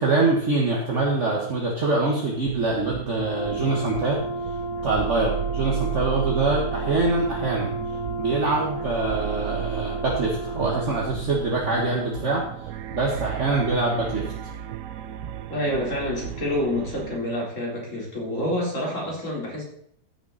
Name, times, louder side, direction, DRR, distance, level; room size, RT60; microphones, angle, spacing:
voice 1, 0.0-4.2 4.8-7.7 8.2-12.4 12.9-14.3, right 3 dB, 40° right, -2 dB, 1.7 m, -24 dB
sound 1, 2.4-17.2, right 10 dB, 85° right, 0.7 m, -34 dB
Brass instrument, 3.2-11.0, right 1 dB, 65° left, 3.5 m, -32 dB
voice 2, 15.5-19.6, left 1 dB, 40° left, -3 dB, 4.1 m, -27 dB
14.0 x 6.8 x 4.0 m, 0.67 s
omnidirectional pair, 2.0 m